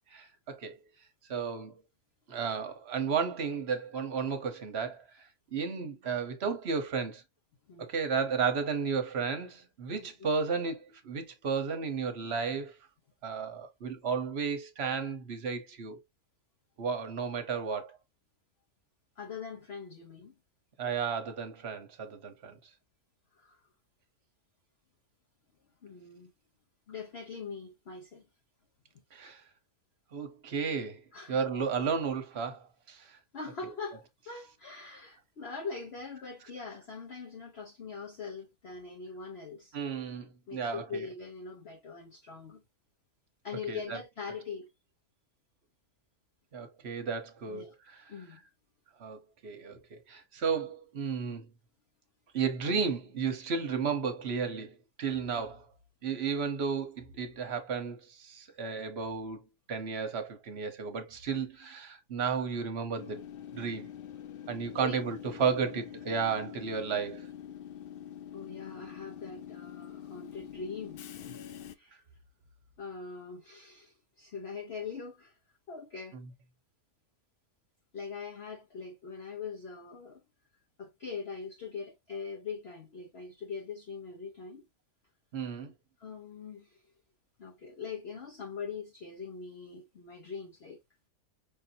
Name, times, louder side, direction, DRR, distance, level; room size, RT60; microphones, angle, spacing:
voice 1, 0.1-0.8 1.3-1.7 2.3-5.2 5.5-7.2 7.8-12.7 13.2-16.0 16.8-18.0 20.8-22.6 29.1-29.4 30.1-33.2 39.7-41.1 43.7-44.0 46.5-48.0 49.0-51.5 52.3-55.7 56.0-63.2 63.5-63.9 64.5-67.3 85.3-85.7, right 6 dB, 50° right, 1.1 m, -33 dB
voice 2, 10.0-10.3 19.2-20.3 23.3-23.6 25.8-26.3 26.9-28.2 31.1-31.4 33.3-39.8 40.5-42.6 43.4-44.7 47.5-47.7 48.1-48.4 64.8-65.0 68.3-71.4 71.7-72.0 72.8-75.4 75.7-76.2 77.9-80.2 80.8-84.6 86.0-86.8 87.4-90.8, left 5 dB, 50° left, 1.0 m, -42 dB
Train / Subway metro underground, 63.0-71.7, left 10 dB, 85° left, 0.5 m, -45 dB
5.5 x 2.7 x 2.7 m
omnidirectional pair, 1.6 m